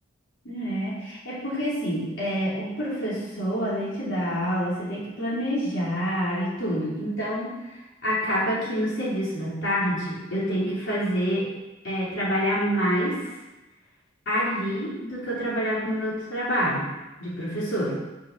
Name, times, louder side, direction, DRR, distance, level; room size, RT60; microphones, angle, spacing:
voice 1, 0.4-11.5 11.8-13.4 14.3-16.9 17.2-17.9, equal, 70° left, -8 dB, 4.3 m, -27 dB
9.1 x 6.7 x 7.1 m, 1.0 s
head